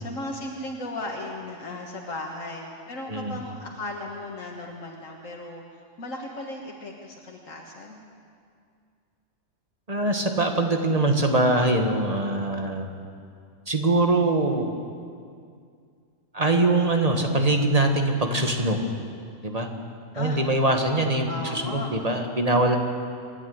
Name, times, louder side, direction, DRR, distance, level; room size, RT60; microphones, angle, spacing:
voice 1, 0.0-5.6 6.0-8.0 20.1-21.9, left 2 dB, 80° left, 0 dB, 2.0 m, -36 dB
voice 2, 9.9-12.9 13.7-14.7 16.3-18.8 19.4-19.7 20.2-22.8, right 2 dB, 30° right, 4 dB, 1.8 m, -23 dB
27.0 x 10.5 x 9.5 m, 2.3 s
omnidirectional pair, 1.3 m